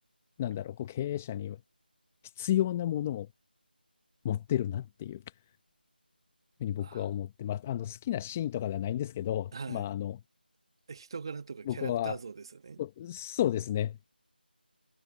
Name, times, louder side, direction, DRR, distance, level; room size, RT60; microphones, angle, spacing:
voice 1, 0.4-1.6 2.4-3.3 4.2-5.2 6.6-10.2 11.7-12.2 12.8-14.0, left 12 dB, 10° left, 0.7 m, -32 dB
voice 2, 6.8-7.1 9.5-9.9 10.9-12.8, right 5 dB, 30° right, 1.8 m, -41 dB
figure-of-eight pair, 170°, 6 cm